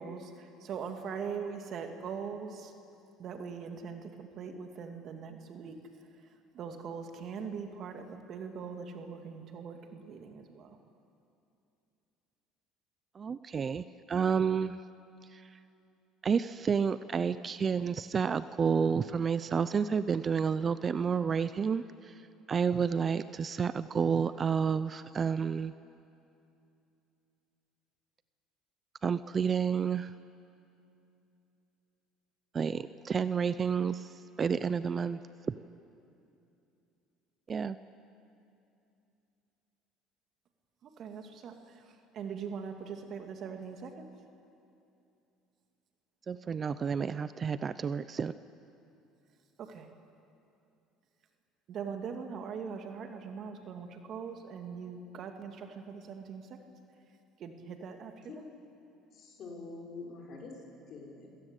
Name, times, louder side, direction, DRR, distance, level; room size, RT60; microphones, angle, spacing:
voice 1, 0.0-2.7 3.2-5.8 6.5-10.8 40.8-44.1 49.6-49.9 51.7-56.4 57.4-58.4, right 6 dB, 50° right, 5 dB, 2.4 m, -41 dB
voice 2, 13.1-14.8 15.3-15.6 16.2-22.2 22.5-25.7 29.0-30.1 32.5-35.2 37.5-37.8 46.3-48.3, right 6 dB, 35° right, 14 dB, 0.6 m, -30 dB
voice 3, 59.1-61.3, left 3 dB, 50° left, -1 dB, 5.8 m, -46 dB
26.0 x 17.0 x 8.3 m, 2.7 s
supercardioid pair, 95°, 0 cm